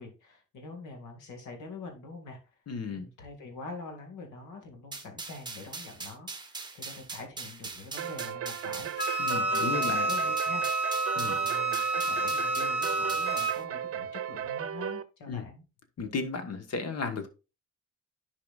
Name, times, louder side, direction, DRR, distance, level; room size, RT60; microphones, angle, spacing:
voice 1, 0.0-2.4 2.9-15.7, left 3 dB, 80° left, 3 dB, 2.2 m, -45 dB
voice 2, 2.7-3.0 9.2-10.1 11.2-11.3 15.3-15.4 16.0-17.3, left 4 dB, 55° left, 8 dB, 1.4 m, -34 dB
sound 1, 4.9-13.6, right 3 dB, 15° right, 1.0 m, -42 dB
sound 2, 8.0-15.0, right 9 dB, 50° right, 0.7 m, -36 dB
Wind instrument woodwind instrument, 9.0-13.6, right 2 dB, 35° left, 1.2 m, -29 dB
10.5 x 4.8 x 2.4 m, 0.30 s
cardioid pair, 90°, 30 cm